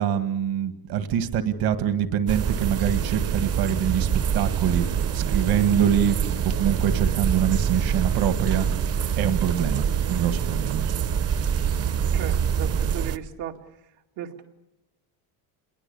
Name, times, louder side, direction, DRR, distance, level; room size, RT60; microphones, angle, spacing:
voice 1, 0.0-4.9 5.1-8.7 9.2-10.8, right 9 dB, 60° right, 9 dB, 1.9 m, -24 dB
sound 1, 2.3-13.2, right 8 dB, 40° right, 0.8 m, -25 dB
voice 2, 12.1-13.6 14.2-14.4, right 10 dB, 90° right, 3 dB, 2.6 m, -35 dB
27.0 x 21.5 x 7.1 m, 0.89 s
cardioid pair, 160°, 40 cm